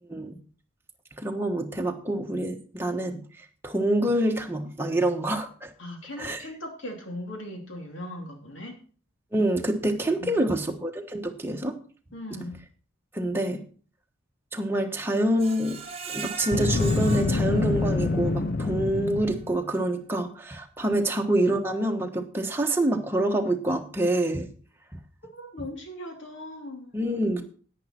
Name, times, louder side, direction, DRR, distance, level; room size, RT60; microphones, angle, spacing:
voice 1, 1.2-3.2 3.6-5.7 6.2-6.4 9.3-11.8 13.1-13.6 14.5-15.8 16.1-24.5 26.9-27.4, right 1 dB, 10° right, 2 dB, 1.2 m, -26 dB
voice 2, 5.8-8.8 10.2-10.7 12.1-12.5 20.9-21.1 25.3-27.0 27.4-27.5, left 1 dB, 65° left, 2 dB, 2.8 m, -39 dB
Screech, 15.4-18.4 18.8-18.9 19.3-19.4, right 5 dB, 30° right, 1.4 m, -39 dB
Boom, 16.4-19.6, left 3 dB, 45° left, 0.5 m, -26 dB
10.5 x 9.2 x 4.4 m, 0.43 s
head